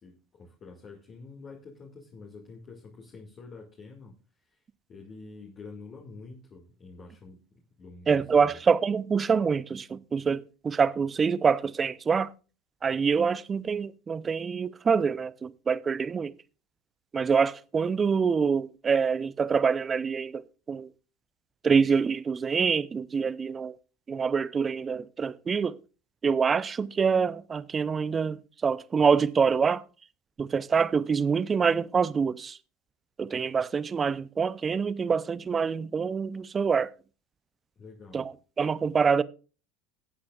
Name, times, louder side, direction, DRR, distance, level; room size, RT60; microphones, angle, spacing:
voice 1, 0.0-4.6 4.9-7.4 7.8-8.6 37.8-38.3, left 4 dB, 35° left, 2.2 m, -47 dB
voice 2, 8.1-12.3 12.8-16.3 17.1-20.9 21.6-23.8 24.1-25.8 26.2-29.8 30.4-32.6 33.2-36.9 38.1-39.2, right 6 dB, 25° right, 0.6 m, -26 dB
20.5 x 8.6 x 2.4 m
hypercardioid pair, 80°, 0 cm